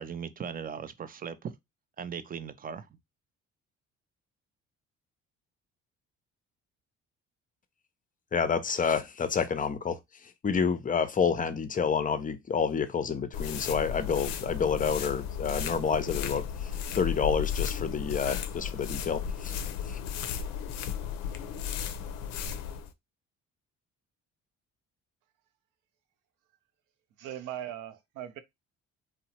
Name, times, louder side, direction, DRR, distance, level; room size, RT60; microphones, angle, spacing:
voice 1, 0.0-1.5 2.0-2.9, right 7 dB, 25° right, 0.4 m, -38 dB
voice 2, 8.3-10.0 10.4-16.4 16.9-19.5 19.9-20.0, left 6 dB, 25° left, 0.5 m, -28 dB
sound 1, 13.3-22.9, left 8 dB, 75° left, 0.5 m, -34 dB
voice 3, 27.2-28.4, right 11 dB, 65° right, 0.6 m, -39 dB
2.8 x 2.1 x 2.8 m
hypercardioid pair, 60°, 34 cm